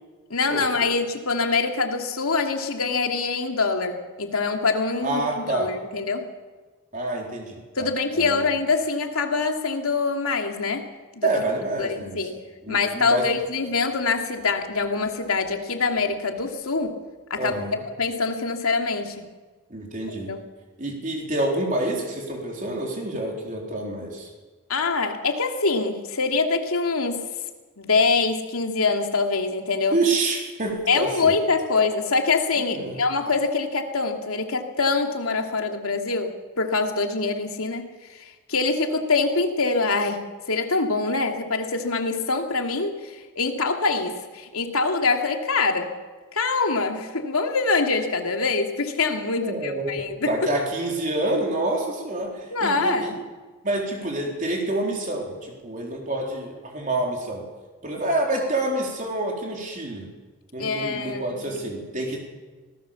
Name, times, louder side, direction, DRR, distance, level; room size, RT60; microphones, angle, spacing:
voice 1, 0.3-6.3 7.7-10.9 11.2-11.3 11.8-12.3 12.7-17.0 17.3-17.6 18.0-19.3 20.1-20.4 24.7-27.2 27.8-30.0 30.9-45.9 46.3-50.5 52.5-53.2 60.6-61.6, left 4 dB, 80° left, 4 dB, 2.7 m, -24 dB
voice 2, 5.0-5.7 6.9-7.9 8.1-8.5 11.2-12.2 12.6-13.3 17.4-17.8 19.7-20.3 20.8-24.3 29.9-31.3 32.6-33.0 49.4-50.0 50.3-53.2 53.6-57.4 57.8-60.1 60.5-62.3, right 2 dB, 35° right, 0 dB, 3.9 m, -27 dB
25.0 x 19.0 x 7.2 m, 1.3 s
head